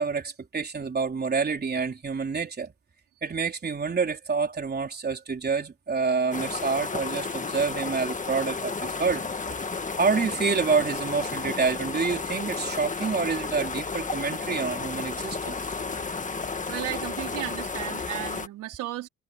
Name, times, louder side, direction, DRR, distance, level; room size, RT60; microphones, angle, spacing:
voice 1, 0.0-2.7 3.2-9.3 10.0-15.6, right 5 dB, 35° right, 3.8 m, -27 dB
sound 1, 6.3-18.5, left 4 dB, 25° left, 1.8 m, -32 dB
voice 2, 16.7-19.1, right 14 dB, 90° right, 4.6 m, -34 dB
cardioid pair, 90°, 30 cm